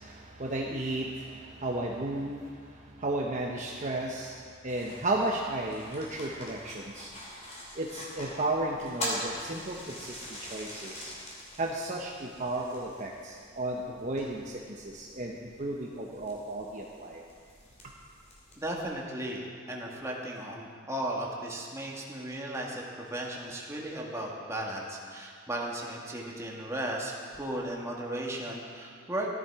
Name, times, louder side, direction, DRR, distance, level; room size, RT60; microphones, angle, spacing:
voice 1, 0.0-7.1 7.8-11.1 11.6-17.2, right 2 dB, 40° right, -2 dB, 1.0 m, -34 dB
sound 1, 4.7-18.8, left 1 dB, 35° left, 3.1 m, -43 dB
voice 2, 18.6-29.3, right 1 dB, 15° right, -3 dB, 1.9 m, -36 dB
14.5 x 12.0 x 4.8 m, 2.1 s
head